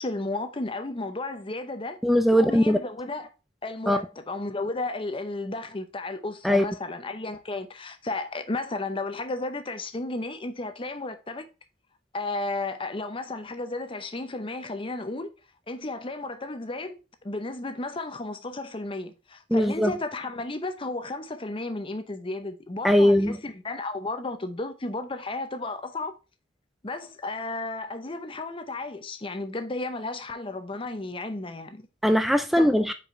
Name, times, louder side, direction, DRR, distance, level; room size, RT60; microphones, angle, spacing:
voice 1, 0.0-2.0 2.3-3.3 3.6-11.5 12.1-15.3 15.7-17.0 17.2-26.2 26.8-31.9 32.6-32.8, left 2 dB, 30° left, 0.7 m, -33 dB
voice 2, 2.0-2.8 3.9-4.0 6.4-6.6 19.5-19.9 22.8-23.4 32.0-32.9, equal, ahead, 0.3 m, -20 dB
5.0 x 4.7 x 4.3 m
head